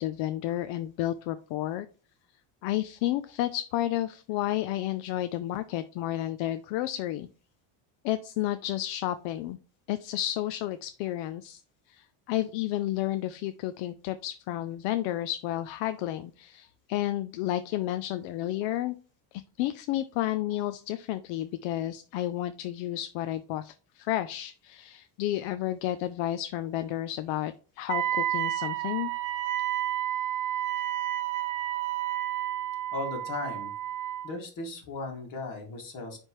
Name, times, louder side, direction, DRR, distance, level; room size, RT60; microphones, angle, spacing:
voice 1, 0.0-1.9 2.6-7.3 8.0-9.6 9.9-11.6 11.9-19.0 19.3-29.1, left 13 dB, 70° left, 11 dB, 0.6 m, -31 dB
Wind instrument woodwind instrument, 27.9-34.3, right 12 dB, 45° right, 0.7 m, -31 dB
voice 2, 32.9-33.7 34.2-36.2, left 3 dB, 45° left, 1 dB, 2.3 m, -36 dB
9.8 x 3.5 x 3.0 m, 0.37 s
cardioid pair, 155°, 45 cm